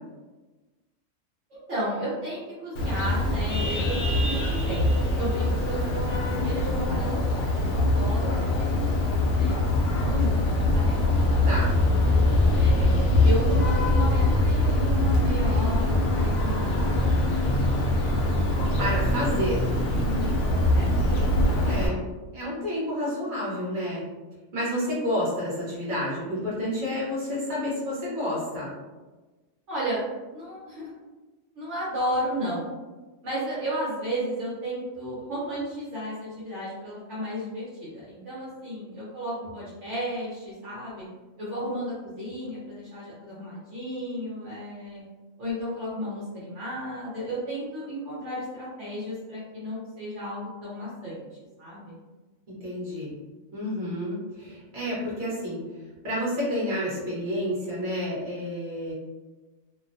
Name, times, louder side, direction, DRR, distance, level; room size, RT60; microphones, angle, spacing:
voice 1, 1.5-8.7 9.0-9.6 10.0-11.5 12.5-17.6 20.0-20.3 20.7-20.9 29.7-30.0 30.3-30.9 31.5-32.7 33.2-41.0 41.4-45.0 45.4-51.3 51.6-51.9, equal, 60° right, -9 dB, 1.1 m, -33 dB
Vehicle horn car horn honking, 2.8-21.9, left 1 dB, 70° left, 0.9 m, -23 dB
voice 2, 18.8-19.6 21.6-22.0 22.3-24.0 24.5-28.7 52.6-53.1 53.5-55.6 56.0-58.9, equal, 40° right, -7 dB, 1.1 m, -29 dB
2.7 x 2.2 x 2.5 m, 1.2 s
omnidirectional pair, 1.4 m